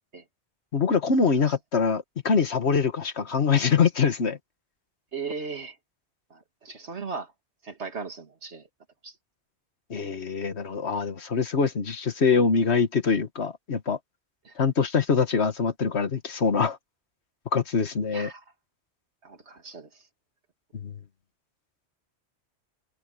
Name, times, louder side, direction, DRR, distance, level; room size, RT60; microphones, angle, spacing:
voice 1, 0.7-4.4 9.9-14.0 14.6-16.8 17.5-18.3 20.7-21.0, left 5 dB, 75° left, 1.7 m, -24 dB
voice 2, 5.1-5.8 6.3-7.3 7.6-8.6 9.0-9.1 14.4-14.5 18.1-18.4 19.2-19.9, right 4 dB, 85° right, 2.6 m, -37 dB
omnidirectional pair, 1.1 m